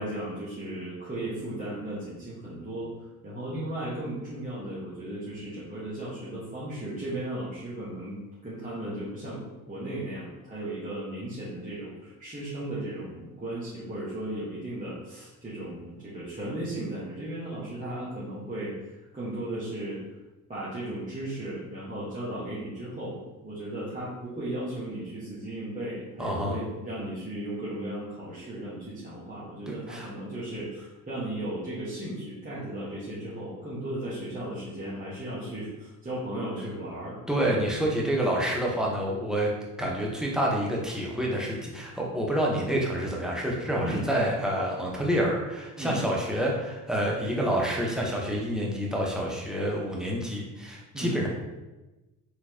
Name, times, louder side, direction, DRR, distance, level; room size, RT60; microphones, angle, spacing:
voice 1, 0.0-2.9 3.2-20.0 20.5-37.6 43.8-44.0 45.8-46.0 50.9-51.2, right 1 dB, 15° right, -10 dB, 1.4 m, -36 dB
voice 2, 26.2-26.6 29.7-30.1 37.3-39.5 39.8-51.3, equal, ahead, -3 dB, 1.1 m, -28 dB
4.0 x 3.1 x 2.9 m, 1.1 s
hypercardioid pair, 55°, 48 cm